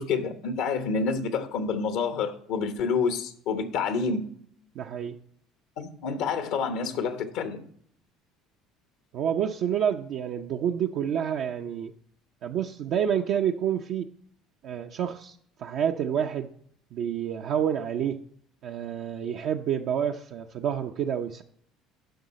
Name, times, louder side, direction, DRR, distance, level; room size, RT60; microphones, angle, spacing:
voice 1, 0.0-4.3 5.8-7.6, left 5 dB, 75° left, 1.0 m, -28 dB
voice 2, 4.7-5.2 9.1-11.9 12.4-14.1 14.6-16.5 16.9-18.2 18.6-21.4, right 9 dB, 65° right, 0.5 m, -28 dB
10.5 x 6.1 x 4.1 m
supercardioid pair, 85°, 0 cm